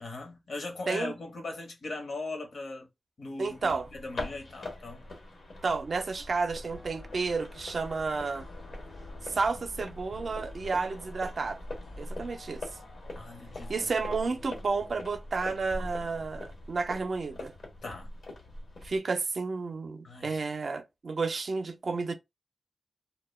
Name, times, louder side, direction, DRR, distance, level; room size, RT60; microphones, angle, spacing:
voice 1, 0.0-2.9 3.2-5.1 13.2-13.9 17.8-18.1 20.0-20.4, left 2 dB, 75° left, 0.9 m, -39 dB
sound 1, 3.4-19.0, left 2 dB, 90° left, 1.1 m, -43 dB
voice 2, 3.4-3.9 5.6-8.5 9.2-11.6 12.0-12.6 13.7-17.5 18.8-22.1, right 4 dB, 65° right, 0.4 m, -31 dB
sound 2, 6.7-14.9, left 3 dB, 45° left, 0.5 m, -53 dB
2.2 x 2.1 x 3.1 m
wide cardioid pair, 105°, 0 cm